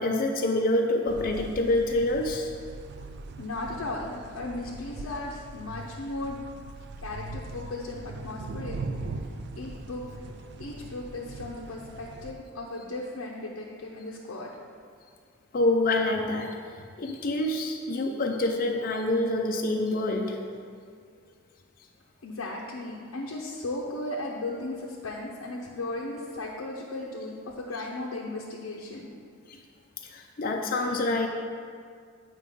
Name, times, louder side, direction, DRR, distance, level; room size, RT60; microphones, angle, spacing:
voice 1, 0.0-2.5 15.5-16.6 17.0-20.4 29.5-29.6 30.0-31.3, left 2 dB, 40° left, 2 dB, 0.4 m, -26 dB
sound 1, 1.1-12.3, right 3 dB, 50° right, 0.3 m, -40 dB
voice 2, 3.4-6.4 7.0-8.8 9.6-10.0 10.6-14.5 21.1-21.3 22.2-29.1, left 2 dB, 80° left, -3 dB, 0.6 m, -36 dB
8.2 x 4.9 x 3.5 m, 2.1 s
head